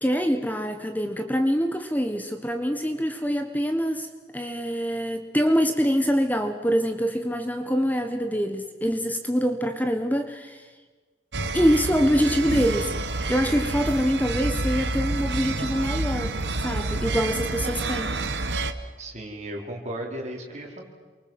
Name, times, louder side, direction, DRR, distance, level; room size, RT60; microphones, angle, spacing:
voice 1, 0.0-4.1 4.3-10.7 11.5-12.9 13.3-16.3 16.6-18.1, equal, 10° left, 6 dB, 1.3 m, -25 dB
sound 1, 11.3-18.7, right 2 dB, 75° right, 1.5 m, -28 dB
voice 2, 19.0-20.8, right 1 dB, 40° right, 0 dB, 4.9 m, -35 dB
28.0 x 24.0 x 7.7 m, 1.4 s
head